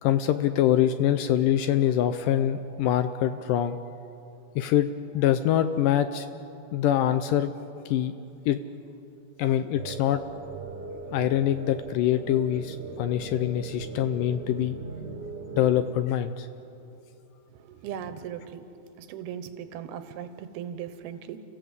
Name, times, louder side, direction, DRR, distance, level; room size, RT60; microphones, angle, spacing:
voice 1, 0.0-3.8 4.6-4.9 5.1-6.3 6.7-7.5 7.9-8.1 8.5-8.6 9.4-10.2 11.1-14.8 15.5-16.5, left 11 dB, 80° left, 10 dB, 2.0 m, -24 dB
sound 1, 9.7-15.8, right 3 dB, 40° right, 1.9 m, -39 dB
voice 2, 17.5-18.7 19.0-21.4, right 9 dB, 85° right, 10 dB, 2.9 m, -38 dB
29.5 x 15.0 x 8.1 m, 2.7 s
omnidirectional pair, 4.4 m